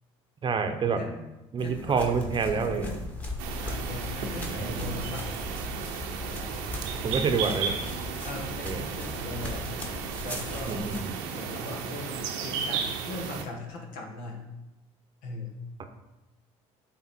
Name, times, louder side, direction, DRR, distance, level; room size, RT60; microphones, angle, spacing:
voice 1, 0.4-1.0 1.5-2.9 7.0-7.7 8.6-8.8 10.7-11.1, right 5 dB, 35° right, 7 dB, 0.8 m, -27 dB
voice 2, 1.6-3.1 3.6-5.2 8.2-9.6 10.2-10.9 11.3-14.5 15.2-15.5, left 2 dB, 75° left, 1 dB, 1.7 m, -39 dB
sound 1, 1.6-11.0, left 2 dB, 10° left, 1.4 m, -38 dB
sound 2, 3.4-13.4, right 6 dB, 85° right, 0.8 m, -34 dB
8.2 x 4.0 x 4.4 m, 0.99 s
supercardioid pair, 95°, 14 cm